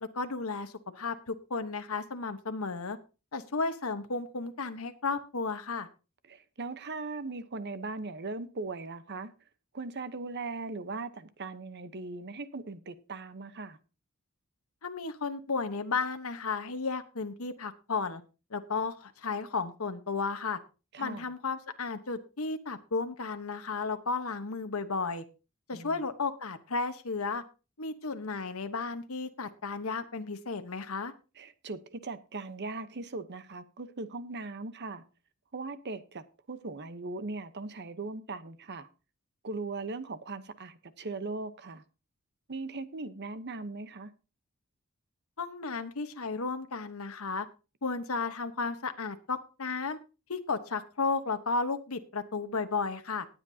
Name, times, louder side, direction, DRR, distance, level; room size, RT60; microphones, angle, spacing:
voice 1, 0.0-3.0 3.3-5.9 14.8-18.2 18.5-20.6 21.0-25.2 25.7-27.4 27.8-31.1 45.4-47.5 47.8-50.0 50.3-53.3, left 4 dB, 75° left, 1.1 m, -33 dB
voice 2, 6.3-9.3 9.7-13.8 20.9-21.3 25.7-26.0 31.4-35.0 35.5-38.9 39.4-41.8 42.5-44.1, right 3 dB, 50° right, 0.9 m, -39 dB
19.0 x 8.1 x 2.8 m
head